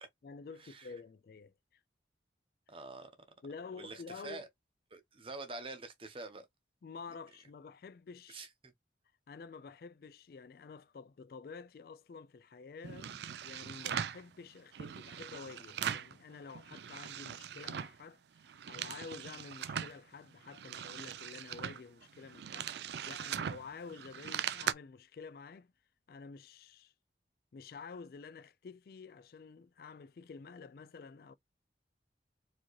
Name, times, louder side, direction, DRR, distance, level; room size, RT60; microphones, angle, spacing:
voice 1, 0.2-1.5 3.4-4.4 6.8-8.5 9.3-25.7 26.1-26.9 27.5-31.3, left 5 dB, 55° left, 0.3 m, -50 dB
voice 2, 2.7-3.1 3.8-4.5 4.9-6.5 8.3-8.7, right 3 dB, 30° right, 0.8 m, -46 dB
sound 1, 12.8-14.2 14.7-16.2 16.5-18.0 18.4-20.0 20.4-24.7, right 8 dB, 65° right, 0.4 m, -40 dB
4.5 x 2.9 x 3.0 m
head